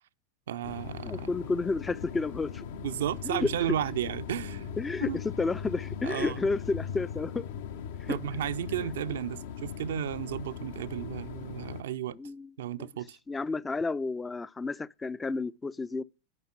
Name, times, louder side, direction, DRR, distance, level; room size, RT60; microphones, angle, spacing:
voice 1, 0.5-1.3 2.7-5.2 6.0-6.4 8.1-12.2 12.6-13.2, right 10 dB, 60° right, 0.5 m, -33 dB
sound 1, 0.6-11.8, left 8 dB, 55° left, 0.7 m, -40 dB
voice 2, 1.0-2.6 3.2-3.5 4.8-5.1 5.4-7.4 8.0-8.2 8.8-8.9 12.1-12.5 13.3-16.0, left 3 dB, 15° left, 0.5 m, -31 dB
10.5 x 5.7 x 7.7 m
figure-of-eight pair, 90°, 0 cm